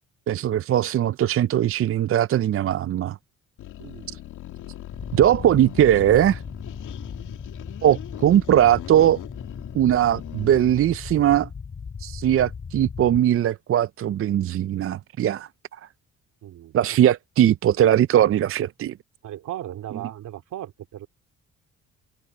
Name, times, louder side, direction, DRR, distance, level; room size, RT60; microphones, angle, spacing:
voice 1, 0.3-3.2 5.1-6.4 7.8-9.2 9.7-11.5 12.0-15.8 16.7-18.9, right 11 dB, 45° right, 0.5 m, -20 dB
sound 1, 3.6-10.8, left 13 dB, 85° left, 2.2 m, -40 dB
voice 2, 3.8-4.2 16.4-17.0 19.2-21.1, right 12 dB, 75° right, 2.6 m, -37 dB
sound 2, 4.9-13.2, left 5 dB, 40° left, 2.5 m, -37 dB
open air
cardioid pair, 90°, 30 cm